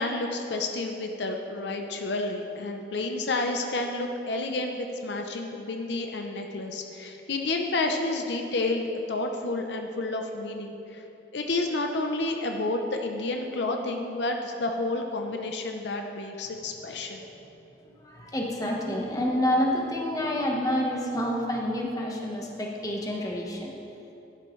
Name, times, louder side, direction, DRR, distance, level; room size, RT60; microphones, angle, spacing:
voice 1, 0.0-11.0 11.3-17.2, left 2 dB, 75° left, 3 dB, 0.7 m, -30 dB
voice 2, 17.1-17.5 17.8-23.7, equal, 20° left, -1 dB, 1.2 m, -28 dB
11.0 x 11.0 x 3.2 m, 2.9 s
head